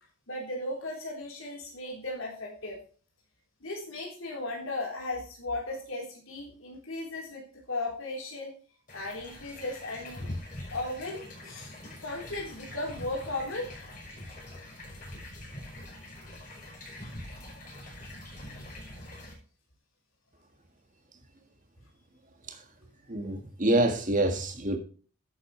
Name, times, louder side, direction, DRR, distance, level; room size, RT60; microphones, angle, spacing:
voice 1, 0.3-2.8 3.6-8.5 8.9-10.3 10.7-11.7 12.0-14.0 14.2-14.3 17.5-17.6, left 2 dB, 75° left, 3.9 m, -36 dB
sound 1, 8.9-19.3, left 1 dB, 40° left, 5.7 m, -43 dB
voice 2, 23.1-24.8, right 1 dB, 40° right, 1.6 m, -26 dB
11.5 x 8.2 x 3.2 m
head